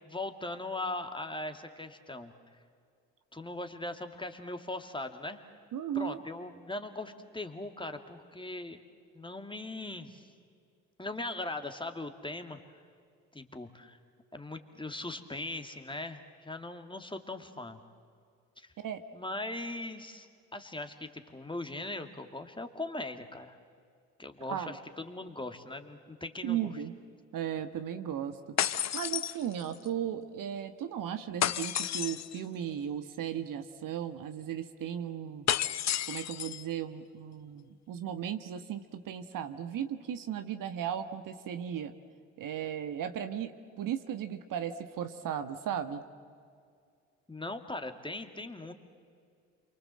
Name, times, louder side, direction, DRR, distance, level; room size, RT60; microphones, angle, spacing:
voice 1, 0.0-2.3 3.3-5.4 5.9-8.8 9.1-10.3 11.0-12.6 13.3-14.0 14.3-17.8 18.6-18.7 19.1-23.5 24.2-26.7 47.3-48.7, left 2 dB, 15° left, 7 dB, 2.5 m, -40 dB
voice 2, 5.7-6.2 18.8-19.0 24.5-24.8 26.4-26.9 27.3-28.4 28.7-35.5 36.1-41.9 42.4-43.5 43.8-46.0, right 9 dB, 55° right, 9 dB, 1.5 m, -36 dB
sound 1, 28.6-29.9 31.4-32.4 35.5-36.6, left 11 dB, 45° left, 0.8 m, -31 dB
28.0 x 24.0 x 7.7 m, 2.2 s
hypercardioid pair, 55°, 38 cm